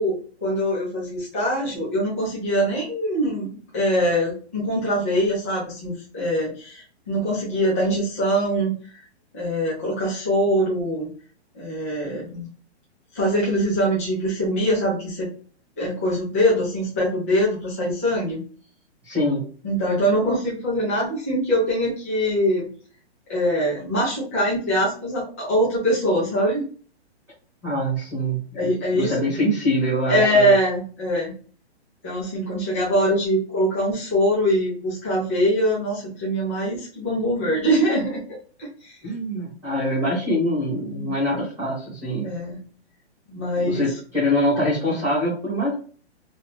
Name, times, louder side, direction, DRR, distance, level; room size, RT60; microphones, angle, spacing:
voice 1, 0.0-3.5 3.7-9.0 9.3-11.1 11.5-12.5 13.1-15.3 15.8-18.4 19.6-22.7 23.3-26.7 28.5-29.1 30.1-31.3 32.0-39.0 40.9-41.1 42.2-42.6 43.3-43.9, equal, 15° left, -7 dB, 0.4 m, -23 dB
voice 2, 19.0-19.4 27.6-30.5 39.0-42.3 43.6-45.7, equal, 5° right, -11 dB, 1.1 m, -24 dB
2.7 x 2.3 x 3.3 m, 0.42 s
hypercardioid pair, 170°, 33 cm